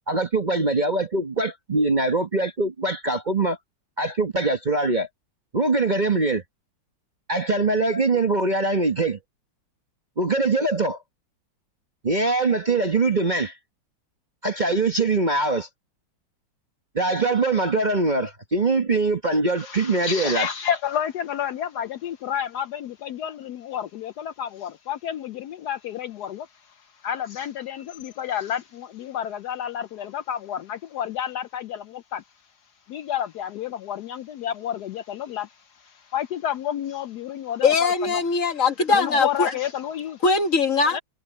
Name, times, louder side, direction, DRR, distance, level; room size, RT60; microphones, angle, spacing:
voice 1, 0.1-3.6 4.0-5.1 5.5-6.4 7.3-9.2 10.2-11.0 12.0-13.6 14.4-15.7 16.9-20.5, right 3 dB, 30° right, 1.0 m, -22 dB
voice 2, 19.6-32.2 32.9-38.2 38.9-40.2 40.9-41.0, left 9 dB, 70° left, 1.0 m, -30 dB
voice 3, 37.6-39.6 40.2-41.0, left 4 dB, 45° left, 1.5 m, -21 dB
omnidirectional pair, 2.0 m